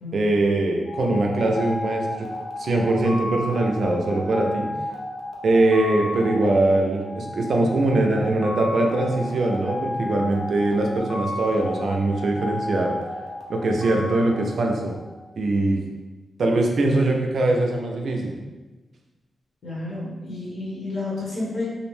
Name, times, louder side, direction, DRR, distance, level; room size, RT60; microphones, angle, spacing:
voice 1, 0.1-2.3 2.6-4.7 5.4-13.0 13.5-14.9 15.4-15.8 16.4-18.4, right 2 dB, 60° right, 1 dB, 0.3 m, -22 dB
sound 1, 0.8-15.3, left 2 dB, 75° left, 0.4 m, -33 dB
voice 2, 19.6-21.7, left 2 dB, 55° left, -7 dB, 1.0 m, -30 dB
2.5 x 2.0 x 3.1 m, 1.2 s
wide cardioid pair, 150°, 0 cm